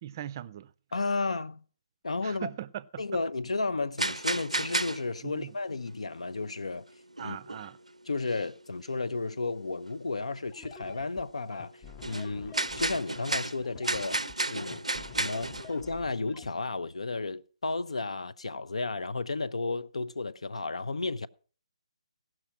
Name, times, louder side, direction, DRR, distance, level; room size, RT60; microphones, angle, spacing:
voice 1, 0.0-0.7 2.2-3.2 5.2-5.5 7.2-7.8, right 11 dB, 35° right, 0.4 m, -40 dB
voice 2, 0.9-1.6 2.0-2.5 3.0-6.8 7.2-7.4 8.1-11.7 12.0-14.2 14.5-14.9 15.2-21.3, left 3 dB, 70° left, 0.6 m, -33 dB
sound 1, 4.0-5.2 5.5-5.9 6.6-6.7 7.2-7.9 8.2-8.5 8.9-9.0 9.3-9.4 10.2-10.4 11.0-11.2 11.5-16.0, right 2 dB, 90° right, 0.5 m, -32 dB
sound 2, 10.5-16.5, left 6 dB, 20° left, 0.6 m, -48 dB
16.5 x 6.0 x 6.0 m
figure-of-eight pair, 140°, 3 cm